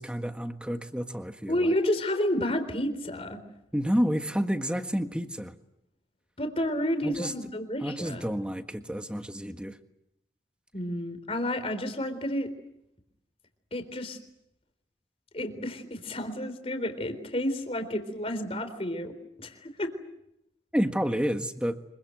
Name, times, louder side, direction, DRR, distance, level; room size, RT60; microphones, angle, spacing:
voice 1, 0.0-1.7 3.7-5.5 7.0-7.3 7.8-9.8 20.7-21.8, equal, 5° right, 7 dB, 1.6 m, -30 dB
voice 2, 1.5-3.4 6.4-8.3 10.7-12.5 13.7-14.2 15.3-19.1 19.4-19.9, left 1 dB, 35° left, 8 dB, 3.9 m, -30 dB
26.5 x 24.0 x 7.9 m, 0.82 s
head